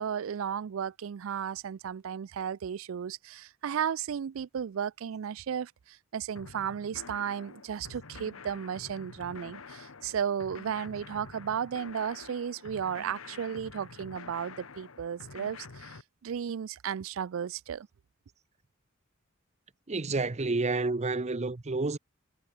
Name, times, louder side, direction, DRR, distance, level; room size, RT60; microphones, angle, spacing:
voice 1, 0.0-16.0 16.2-17.9, right 8 dB, 70° right, 0.4 m, -34 dB
sound 1, 6.4-16.0, left 4 dB, 85° left, 1.2 m, -48 dB
voice 2, 19.9-22.0, right 3 dB, 35° right, 0.7 m, -29 dB
head